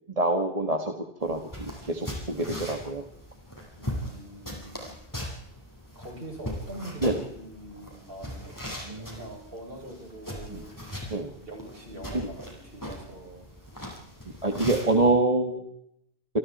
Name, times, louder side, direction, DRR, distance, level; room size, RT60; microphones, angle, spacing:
voice 1, 0.1-0.9 1.2-3.0 7.0-7.2 8.9-9.2 10.5-10.6 11.1-11.3 12.1-12.3 14.4-15.7, right 2 dB, 30° right, 4 dB, 1.9 m, -26 dB
sound 1, 1.2-15.1, equal, 15° left, 7.2 m, -40 dB
voice 2, 3.8-5.0 6.0-10.7 11.4-13.5, right 1 dB, 55° right, 1 dB, 7.3 m, -43 dB
28.0 x 25.0 x 4.3 m, 0.76 s
omnidirectional pair, 1.2 m